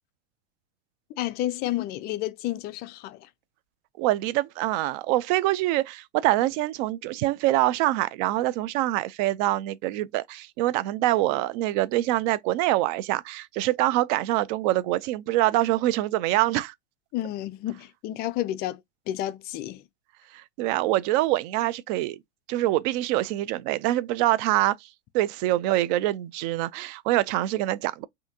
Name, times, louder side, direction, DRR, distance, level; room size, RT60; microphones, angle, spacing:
voice 1, 1.2-3.2 17.1-18.8 19.1-19.8, left 14 dB, 30° left, 0.4 m, -30 dB
voice 2, 4.0-16.7 20.3-22.2 22.5-24.9 25.1-28.0, right 16 dB, 40° right, 0.4 m, -25 dB
5.5 x 2.7 x 2.7 m
hypercardioid pair, 100°, 36 cm